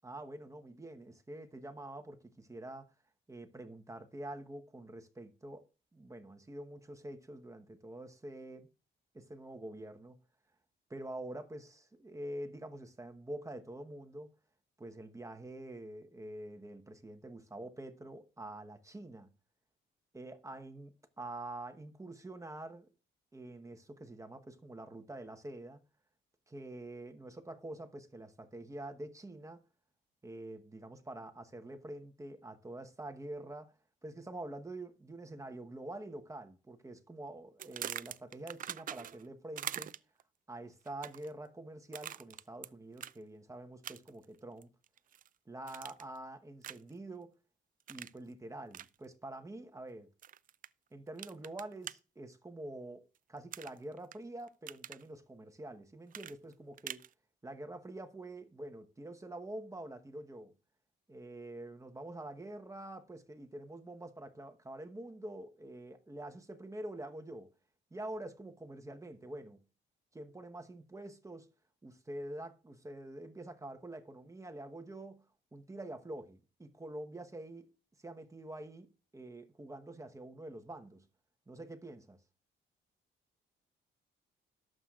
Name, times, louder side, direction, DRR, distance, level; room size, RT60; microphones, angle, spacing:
voice 1, 0.0-2.9 3.3-8.7 9.1-10.2 10.9-14.3 14.8-19.3 20.1-22.9 23.3-25.8 26.5-29.6 30.2-33.7 34.0-40.0 40.5-44.7 45.5-47.4 47.9-50.1 50.9-57.0 57.4-60.5 61.1-67.5 67.9-69.6 70.1-71.5 71.8-75.3 75.5-77.7 78.0-81.1 81.5-82.2, right 1 dB, 15° right, 1.1 m, -46 dB
sound 1, 37.6-39.3 39.6-40.2 40.9-41.3 41.9-42.7 43.0-43.2 43.8-44.2 44.6-45.3 45.7-46.2 46.6-46.9 47.9-48.2 48.7-48.9 50.2-50.7 51.2-51.9 53.5-54.2 54.5-55.0 56.1-57.1, right 10 dB, 45° right, 0.4 m, -43 dB
18.0 x 7.6 x 2.4 m
cardioid pair, 90°, 20 cm